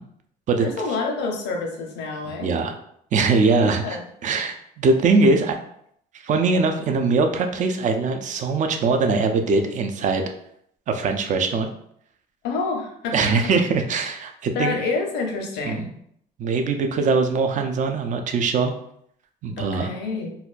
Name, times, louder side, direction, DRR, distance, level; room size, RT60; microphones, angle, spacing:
voice 1, 0.6-2.6 3.6-4.1 12.4-13.1 14.5-15.9 19.6-20.4, left 4 dB, 85° left, 2 dB, 0.7 m, -28 dB
voice 2, 2.3-2.8 3.1-4.0 4.2-5.6 6.2-10.2 10.9-11.7 13.1-14.8 15.6-15.8 16.4-18.7 19.4-19.9, right 4 dB, 45° right, 5 dB, 0.5 m, -21 dB
4.1 x 2.2 x 2.5 m, 0.69 s
cardioid pair, 110°, 17 cm